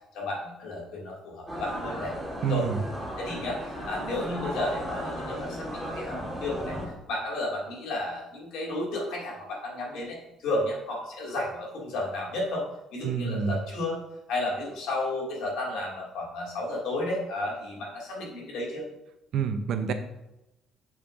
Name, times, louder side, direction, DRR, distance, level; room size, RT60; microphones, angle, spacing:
voice 1, 0.1-2.1 2.5-2.7 3.2-6.8 7.1-12.6 12.9-14.0 14.3-18.9, left 2 dB, 75° left, -3 dB, 2.3 m, -32 dB
sound 1, 1.5-6.9, equal, ahead, 1.6 m, -35 dB
voice 2, 2.4-2.8 13.0-13.6 19.3-19.9, right 7 dB, 60° right, 8 dB, 0.6 m, -27 dB
6.8 x 6.3 x 2.6 m, 0.93 s
cardioid pair, 160°, 0 cm